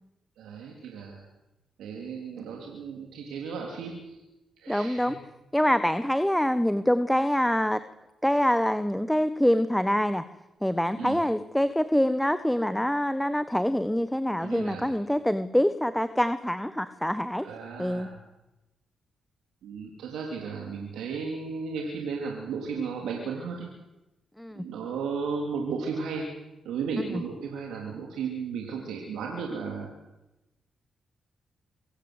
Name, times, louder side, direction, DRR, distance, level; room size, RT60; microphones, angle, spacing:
voice 1, 0.4-1.2 1.8-4.2 4.6-5.1 11.0-11.2 14.4-15.0 17.4-18.2 19.6-23.7 24.5-26.3 26.7-29.9, right 5 dB, 90° right, 0 dB, 3.5 m, -34 dB
voice 2, 4.7-5.2 5.5-7.8 8.2-10.2 10.6-17.4 17.8-18.1 24.4-24.6 27.1-27.2, equal, 5° left, 12 dB, 1.2 m, -25 dB
25.0 x 15.5 x 8.2 m, 0.99 s
cardioid pair, 65°, 0 cm